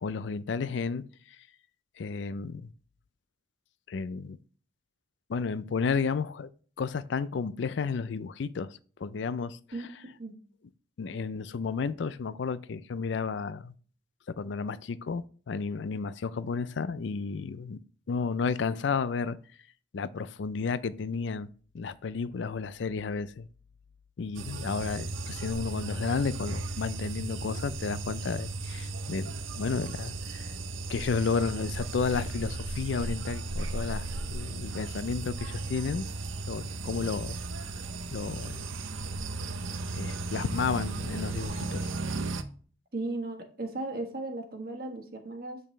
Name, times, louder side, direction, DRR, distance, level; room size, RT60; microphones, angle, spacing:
voice 1, 0.0-1.0 2.0-2.7 3.9-4.4 5.3-6.5 6.8-9.9 11.0-13.7 14.4-17.8 18.1-19.4 19.9-21.5 21.7-23.5 24.2-30.5 30.9-36.1 36.5-37.4 38.1-38.7 40.0-41.9, left 5 dB, 70° left, 0.4 m, -32 dB
sound 1, 24.3-42.4, right 2 dB, 90° right, 0.6 m, -35 dB
voice 2, 42.9-45.6, right 2 dB, 50° right, 1.3 m, -36 dB
8.7 x 5.4 x 3.2 m
head